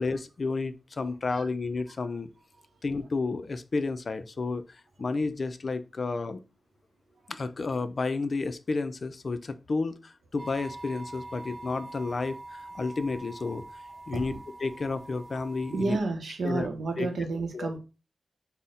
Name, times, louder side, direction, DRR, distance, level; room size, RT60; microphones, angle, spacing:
voice 1, 0.0-2.3 2.8-6.4 7.3-13.6 14.1-14.3 14.6-16.0 16.4-16.7 17.0-17.3 17.5-17.7, left 3 dB, 60° left, 0.4 m, -31 dB
sound 1, 10.4-16.0, right 2 dB, 40° right, 0.4 m, -44 dB
voice 2, 15.7-17.8, right 3 dB, 90° right, 0.6 m, -31 dB
4.0 x 2.1 x 3.7 m
cardioid pair, 65°, 0 cm